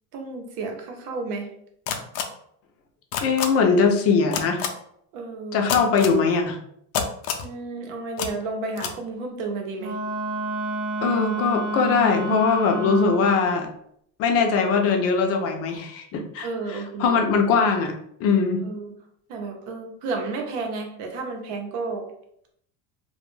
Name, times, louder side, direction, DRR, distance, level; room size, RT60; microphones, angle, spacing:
voice 1, 0.1-1.5 5.1-5.6 7.4-10.0 16.4-17.2 18.6-18.9 19.3-22.0, right 3 dB, 80° right, 3 dB, 0.7 m, -32 dB
sound 1, 1.9-2.2 3.1-3.5 4.3-4.7 5.7-6.1 6.9-7.5 8.2-8.3 8.8-8.9, left 8 dB, 90° left, 0.5 m, -26 dB
voice 2, 3.2-4.6 5.5-6.6 11.0-13.7 14.2-17.9 18.2-18.6, left 5 dB, 40° left, 4 dB, 0.4 m, -21 dB
Wind instrument woodwind instrument, 9.8-13.4, right 2 dB, 45° right, 0.5 m, -29 dB
2.2 x 2.1 x 3.1 m, 0.70 s
cardioid pair, 145°, 36 cm